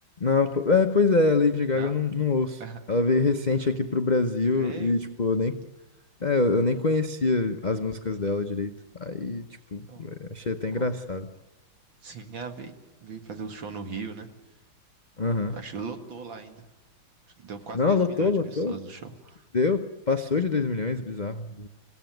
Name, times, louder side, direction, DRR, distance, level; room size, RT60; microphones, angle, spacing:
voice 1, 0.2-2.6 2.9-5.6 6.2-8.7 9.0-11.3 15.2-15.5 17.7-18.7 19.5-21.7, left 3 dB, 75° left, 5 dB, 0.4 m, -25 dB
voice 2, 4.4-5.0 9.9-10.0 10.7-11.0 12.0-12.7 13.0-14.3 15.2-16.7 17.4-19.4, right 5 dB, 65° right, 5 dB, 2.7 m, -39 dB
27.0 x 16.5 x 9.2 m, 1.1 s
omnidirectional pair, 2.4 m